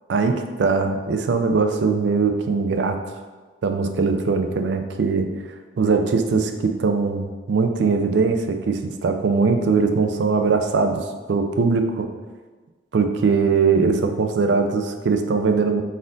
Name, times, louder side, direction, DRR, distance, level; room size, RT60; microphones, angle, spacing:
voice 1, 0.1-3.0 3.6-5.3 5.8-12.1 12.9-15.8, right 4 dB, 70° right, 6 dB, 0.4 m, -21 dB
4.1 x 2.6 x 3.7 m, 1.3 s
head